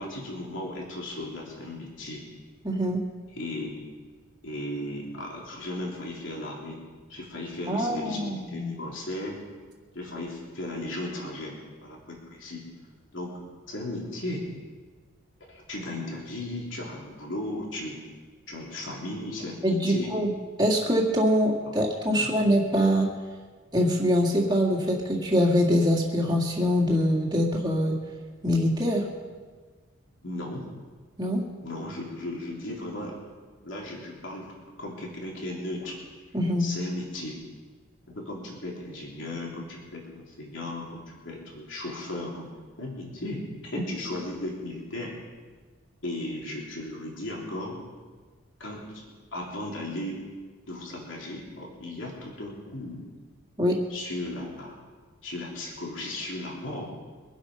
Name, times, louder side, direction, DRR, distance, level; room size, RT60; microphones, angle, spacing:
voice 1, 0.0-2.3 3.3-3.9 4.4-6.8 7.1-9.4 9.9-12.6 13.1-14.4 15.5-18.0 18.5-20.1 21.6-21.8 22.1-22.3 30.2-30.7 31.6-33.2 33.6-34.5 34.8-36.0 36.6-37.4 38.1-42.5 42.8-45.1 46.0-47.8 48.6-49.0 49.3-50.2 50.7-53.0 53.9-54.8 55.2-56.9, left 1 dB, 60° left, -2 dB, 3.6 m, -36 dB
voice 2, 2.6-3.0 7.7-8.7 19.6-20.3 20.6-23.1 23.7-28.0 28.4-29.0 31.2-31.4 36.3-36.7 53.6-53.8, equal, 20° right, -1 dB, 2.2 m, -24 dB
24.0 x 8.2 x 5.7 m, 1.5 s
head